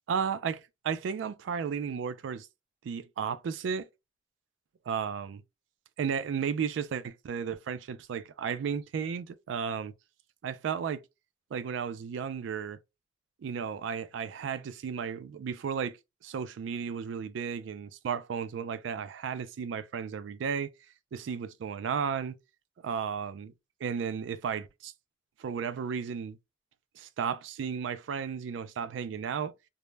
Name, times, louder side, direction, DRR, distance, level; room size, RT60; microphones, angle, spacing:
voice 1, 0.1-2.5 2.8-3.9 4.9-5.4 6.0-9.9 10.4-11.0 11.5-12.8 13.4-16.0 16.2-20.7 21.1-22.4 22.8-23.5 23.8-24.9 25.4-26.4 27.0-29.5, right 6 dB, 85° right, 0.3 m, -34 dB
2.1 x 2.0 x 3.1 m
head